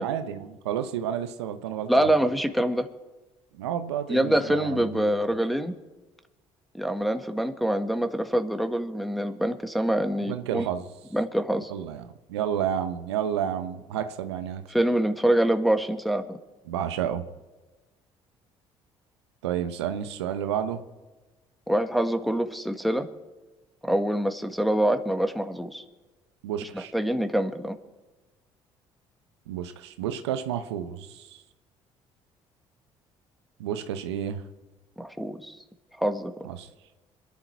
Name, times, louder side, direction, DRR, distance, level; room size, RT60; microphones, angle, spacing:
voice 1, 0.0-2.1 3.5-5.1 10.3-10.9 11.7-14.6 16.7-17.2 19.4-20.8 26.4-26.9 29.5-31.4 33.6-34.4 36.4-36.7, right 9 dB, 90° right, 9 dB, 0.9 m, -31 dB
voice 2, 1.9-2.9 4.1-5.7 6.7-10.7 11.1-11.7 14.7-16.4 21.7-23.1 23.8-25.8 26.7-27.8 35.0-35.5 36.0-36.3, right 1 dB, ahead, 6 dB, 1.7 m, -25 dB
27.0 x 11.0 x 4.6 m, 1.2 s
hypercardioid pair, 55°, 14 cm